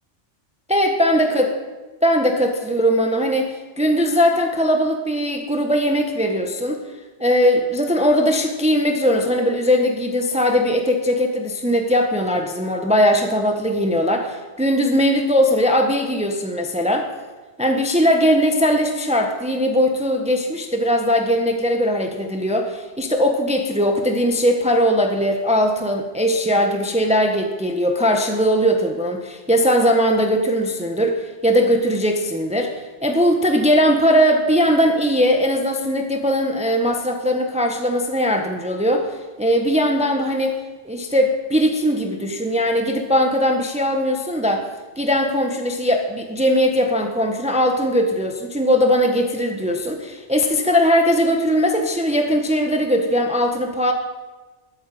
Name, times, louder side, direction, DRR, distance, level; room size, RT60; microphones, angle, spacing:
voice 1, 0.7-1.5 2.0-6.8 7.2-17.1 17.6-40.6 40.8-44.7 45.0-53.9, equal, 5° right, 3 dB, 1.2 m, -19 dB
21.0 x 8.8 x 7.7 m, 1.3 s
omnidirectional pair, 1.2 m